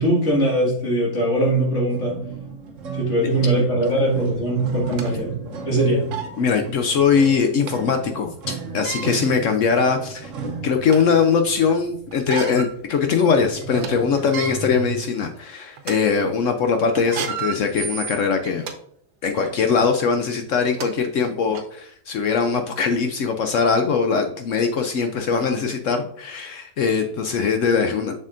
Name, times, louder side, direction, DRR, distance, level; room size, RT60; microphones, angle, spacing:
voice 1, 0.0-2.2 2.9-5.4 5.6-6.0 9.0-9.1, right 1 dB, 45° left, -4 dB, 2.2 m, -21 dB
sound 1, 1.9-14.9, right 5 dB, 55° right, 1.1 m, -35 dB
sound 2, 3.9-4.0 4.7-5.1 5.7-5.8 6.1-6.3 7.7-7.8 8.7-9.1 9.9-10.0 10.5-11.2 12.1-12.7 13.2-13.3 13.6-13.9 14.2-14.5 15.2-15.4 15.8-15.9 17.0-18.7 19.4-19.6 20.4-20.5 20.8-20.9 21.5-21.6, right 7 dB, 80° right, 1.4 m, -32 dB
voice 2, 6.4-10.3 10.6-18.6 19.2-28.1, left 5 dB, 65° left, 6 dB, 0.8 m, -21 dB
7.2 x 6.5 x 2.5 m, 0.67 s
omnidirectional pair, 1.7 m